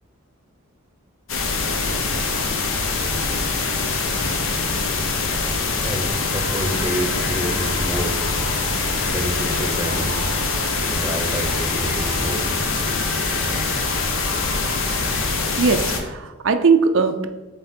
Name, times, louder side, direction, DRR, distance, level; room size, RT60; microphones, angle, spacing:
sound 1, 1.3-16.0, left 4 dB, 65° left, 0.8 m, -23 dB
voice 1, 5.8-8.3 9.1-10.2 11.0-12.7 13.4-13.9, equal, 15° right, 3 dB, 0.8 m, -29 dB
sound 2, 6.3-15.2, equal, 40° left, 1.0 m, -35 dB
voice 2, 15.6-17.3, right 4 dB, 60° right, 8 dB, 0.5 m, -19 dB
7.4 x 3.5 x 4.3 m, 1.2 s
head